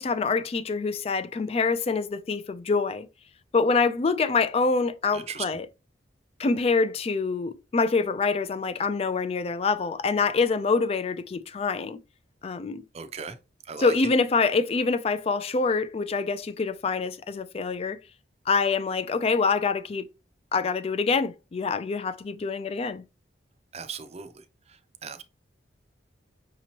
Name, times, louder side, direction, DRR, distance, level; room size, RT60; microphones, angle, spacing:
voice 1, 0.0-3.1 3.5-5.7 6.4-12.0 12.4-12.8 13.8-18.0 18.5-20.1 20.5-23.0, left 4 dB, 30° left, 0.3 m, -25 dB
voice 2, 5.1-5.5 12.9-13.4 13.7-13.9 23.7-24.3 25.0-25.2, right 6 dB, 35° right, 0.5 m, -37 dB
5.9 x 2.9 x 2.8 m
head